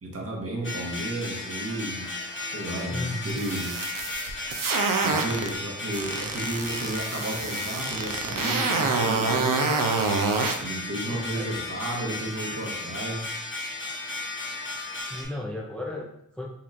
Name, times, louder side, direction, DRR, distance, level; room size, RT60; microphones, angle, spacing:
voice 1, 0.0-2.1 2.4-3.7 5.0-9.8 10.6-13.4, right 1 dB, 40° right, -1 dB, 1.0 m, -32 dB
sound 1, 0.6-15.3, left 2 dB, 35° left, 0.8 m, -35 dB
voice 2, 2.9-3.4 11.1-11.5 15.1-16.5, left 1 dB, 5° left, 0 dB, 0.3 m, -34 dB
sound 2, 3.3-5.5 5.9-10.6, right 4 dB, 65° right, 0.5 m, -27 dB
4.0 x 3.0 x 2.5 m, 0.76 s
wide cardioid pair, 100°, 36 cm